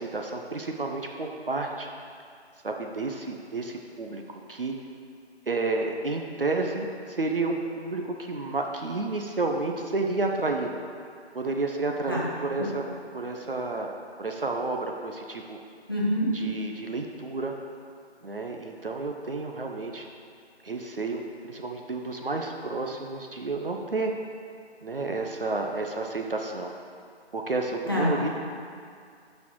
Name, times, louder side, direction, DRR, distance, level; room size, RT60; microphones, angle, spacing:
voice 1, 0.0-1.9 2.6-4.7 5.5-10.8 11.3-12.8 13.1-13.9 14.2-15.6 16.3-17.5 18.2-20.0 20.6-24.1 24.8-26.7 27.3-28.3, right 3 dB, 55° right, 2 dB, 0.8 m, -31 dB
voice 2, 15.9-16.3 27.9-28.3, equal, 20° left, -7 dB, 0.9 m, -26 dB
12.0 x 4.3 x 4.6 m, 2.3 s
figure-of-eight pair, 175°, 33 cm